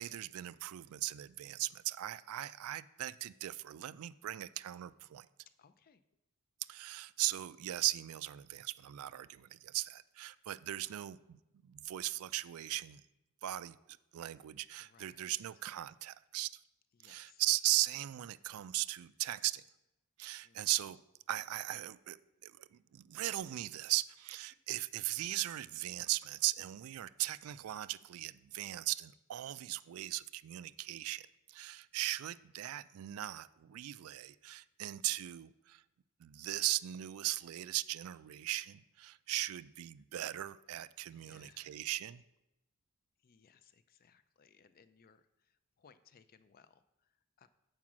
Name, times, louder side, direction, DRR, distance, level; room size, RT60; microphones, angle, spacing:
voice 1, 0.0-5.3 6.7-13.0 13.4-13.8 14.1-16.5 17.0-19.6 20.2-21.0 21.3-22.2 22.4-31.2 31.5-35.8 36.2-42.2, right 15 dB, 70° right, 16 dB, 0.3 m, -38 dB
voice 2, 5.6-6.0 14.8-15.4 16.9-17.4 20.4-20.6 41.1-41.8 43.2-47.5, left 6 dB, 40° left, 13 dB, 0.4 m, -65 dB
7.3 x 4.8 x 6.1 m, 0.92 s
head